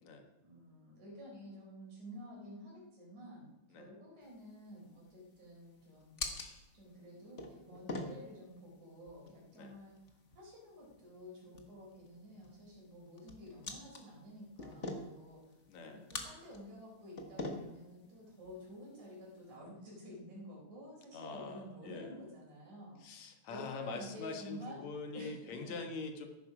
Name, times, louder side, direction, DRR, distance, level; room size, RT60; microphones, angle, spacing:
voice 1, 0.4-6.2 6.7-10.0 10.3-15.6 15.8-23.0 23.5-25.8, equal, 85° right, -3 dB, 5.8 m, -51 dB
sound 1, 4.2-19.6, left 2 dB, 40° left, 1.1 m, -48 dB
voice 2, 15.7-16.1 17.5-17.7 21.1-22.2 23.0-26.3, left 4 dB, 70° left, 4 dB, 2.7 m, -45 dB
14.0 x 11.5 x 5.0 m, 1.0 s
omnidirectional pair, 3.3 m